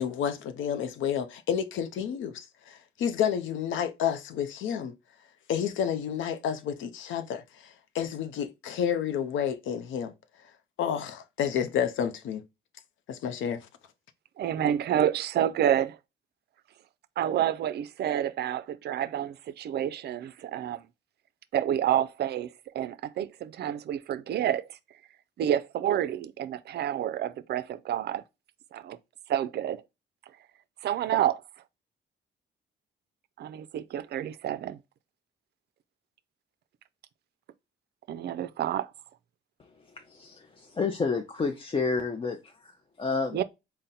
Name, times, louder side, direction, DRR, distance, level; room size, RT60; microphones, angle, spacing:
voice 1, 0.0-4.9 5.5-10.1 10.8-12.4 13.1-13.7, left 8 dB, 80° left, 0.6 m, -30 dB
voice 2, 14.4-16.0 17.2-20.8 21.5-24.6 25.4-28.2 28.7-29.0 29.3-29.8 30.8-31.4 33.4-34.8 38.1-38.9 43.3-43.4, right 11 dB, 55° right, 0.4 m, -29 dB
voice 3, 40.1-43.4, left 4 dB, 25° left, 0.5 m, -30 dB
3.8 x 2.1 x 4.1 m
cardioid pair, 90°, 20 cm